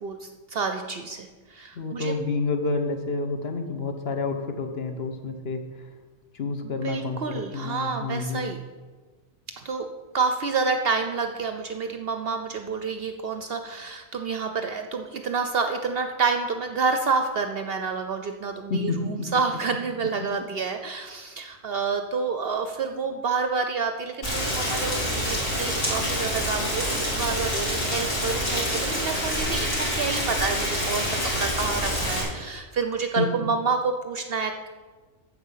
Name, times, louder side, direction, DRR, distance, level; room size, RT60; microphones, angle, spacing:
voice 1, 0.0-2.1 6.6-8.6 9.6-9.9 10.1-34.7, right 4 dB, 60° right, 6 dB, 0.7 m, -28 dB
voice 2, 1.7-5.6 6.3-8.6 18.7-19.0 33.2-33.4, left 3 dB, 50° left, 5 dB, 1.1 m, -29 dB
Rain, 24.2-32.2, equal, 70° left, 3.4 m, -27 dB
Coin (dropping), 28.2-31.8, left 1 dB, 10° left, 1.1 m, -38 dB
9.0 x 7.5 x 5.6 m, 1.4 s
omnidirectional pair, 1.4 m